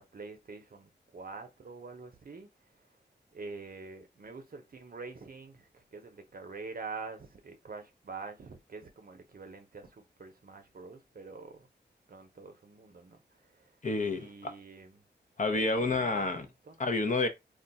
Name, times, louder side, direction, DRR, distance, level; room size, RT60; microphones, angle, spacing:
voice 1, 0.0-2.5 3.3-11.7 12.1-13.2 13.5-13.6 14.1-15.0 15.4-16.8, right 4 dB, 55° right, 0.7 m, -46 dB
voice 2, 13.8-14.5 15.4-16.4 16.8-17.3, left 3 dB, 45° left, 0.7 m, -29 dB
2.4 x 2.2 x 3.9 m
wide cardioid pair, 75°, 18 cm